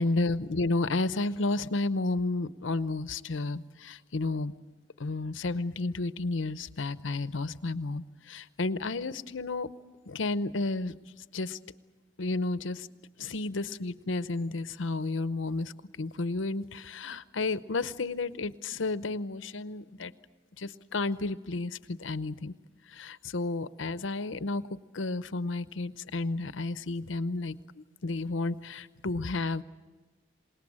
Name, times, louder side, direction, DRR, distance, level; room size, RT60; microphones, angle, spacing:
voice 1, 0.0-4.5 5.0-9.7 10.1-10.9 11.3-11.6 12.2-12.9 13.2-15.7 16.0-20.1 20.6-22.5 22.9-24.6 24.9-27.6 28.0-29.6, left 3 dB, 85° left, 14 dB, 0.8 m, -32 dB
27.0 x 18.5 x 8.8 m, 1.3 s
head